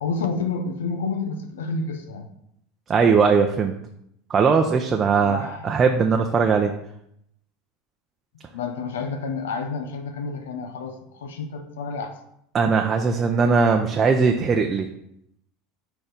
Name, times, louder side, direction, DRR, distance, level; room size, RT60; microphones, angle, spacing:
voice 1, 0.0-2.3 5.2-5.7 8.5-12.2, left 4 dB, 90° left, 7 dB, 0.6 m, -29 dB
voice 2, 2.9-3.7 4.3-6.7 12.5-14.9, right 5 dB, 30° right, 3 dB, 0.6 m, -19 dB
4.6 x 4.4 x 5.1 m, 0.75 s
hypercardioid pair, 100°, 0 cm